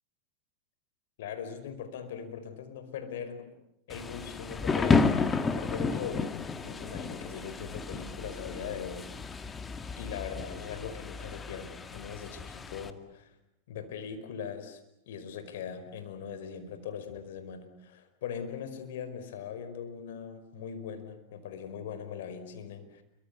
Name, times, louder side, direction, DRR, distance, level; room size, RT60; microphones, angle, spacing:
voice 1, 1.2-3.5 3.9-9.1 9.5-9.6 10.0-13.3 13.7-14.8 15.1-23.0, left 7 dB, 70° left, 9 dB, 5.1 m, -40 dB
Thunder / Rain, 3.9-12.9, left 4 dB, 20° left, 2.1 m, -32 dB
29.5 x 24.5 x 8.3 m, 0.82 s
hypercardioid pair, 95°, 0 cm